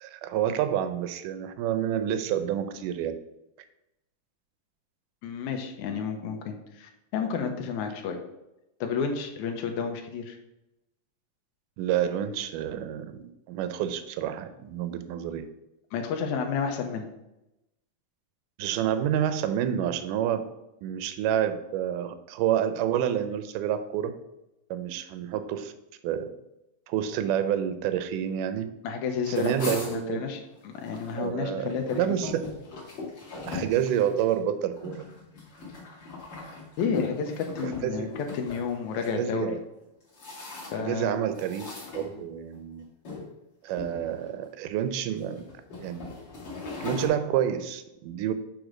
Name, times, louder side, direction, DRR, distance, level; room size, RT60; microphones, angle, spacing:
voice 1, 0.0-3.2 11.8-15.5 18.6-20.5 20.8-24.1 24.7-25.7 26.0-26.3 26.9-28.7 29.3-30.3 31.2-32.5 33.5-35.1 37.6-38.1 38.9-39.6 40.8-42.8 43.6-45.4 45.8-46.1 46.8-48.3, right 10 dB, 85° right, 10 dB, 2.2 m, -28 dB
voice 2, 5.2-8.2 8.8-10.4 15.9-17.1 28.8-32.2 36.8-39.6 40.7-41.1, left 6 dB, 70° left, 4 dB, 2.1 m, -31 dB
sound 1, 29.2-31.2 31.5-39.1 39.8-41.0 41.3-42.6 43.0-43.3 43.7-44.4 45.1-47.1, left 3 dB, 40° left, 2.8 m, -39 dB
8.0 x 3.9 x 4.9 m, 0.92 s
omnidirectional pair, 3.7 m